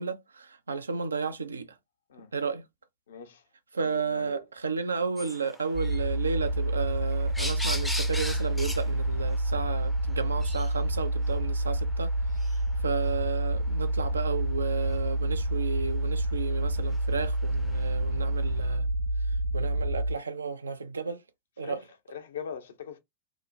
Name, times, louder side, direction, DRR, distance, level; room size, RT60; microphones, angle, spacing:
voice 1, 0.0-1.7 2.3-2.6 3.7-12.1 12.4-18.9 19.5-21.2 21.6-21.8, right 5 dB, 75° right, 0.4 m, -33 dB
voice 2, 3.1-3.4 3.8-4.4 16.0-16.1 21.6-21.8 22.1-23.0, left 7 dB, 65° left, 0.7 m, -41 dB
sound 1, 5.2-18.5, left 1 dB, 5° left, 0.5 m, -42 dB
sound 2, 5.7-20.1, right 1 dB, 60° right, 0.8 m, -28 dB
2.8 x 2.1 x 2.4 m
figure-of-eight pair, 90°, 0 cm